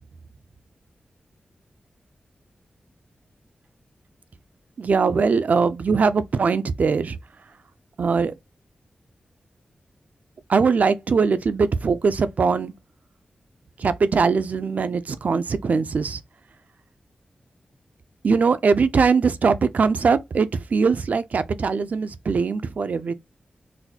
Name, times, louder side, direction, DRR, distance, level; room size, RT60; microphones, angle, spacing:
voice 1, 4.8-7.2 8.0-8.3 10.5-12.7 13.8-16.2 18.2-23.1, right 5 dB, 60° right, 0.4 m, -21 dB
4.0 x 2.3 x 2.7 m
wide cardioid pair, 105°, 3 cm